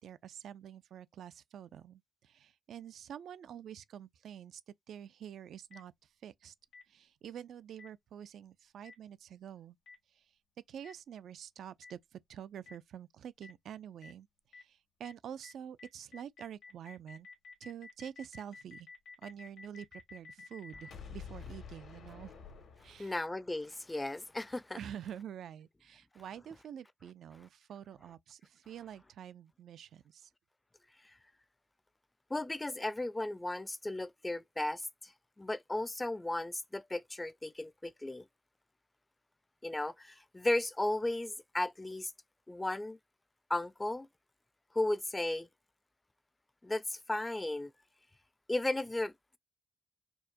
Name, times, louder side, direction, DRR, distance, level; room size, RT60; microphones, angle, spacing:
voice 1, 0.0-4.6 4.9-6.5 6.9-9.8 10.1-10.3 10.7-17.3 17.6-18.9 19.2-22.3 22.8-23.2 24.8-30.3, right 9 dB, 80° right, 0.3 m, -47 dB
Boom, 5.7-5.8 6.7-6.8 7.8-7.9 8.8-8.9 9.9-10.0 10.8-10.9 11.8-11.9 12.7-12.8 13.4-13.5 14.0-14.1 14.5-14.6 15.0-15.1 15.4-15.5 15.8-23.3, left 5 dB, 85° left, 1.5 m, -50 dB
voice 2, 23.0-24.8 32.3-34.8 35.4-38.2 39.6-42.1 42.5-43.0 43.5-44.1 44.7-45.5 46.6-47.7 48.5-49.1, left 2 dB, 15° left, 0.4 m, -35 dB
4.5 x 2.1 x 2.5 m
cardioid pair, 90°, 0 cm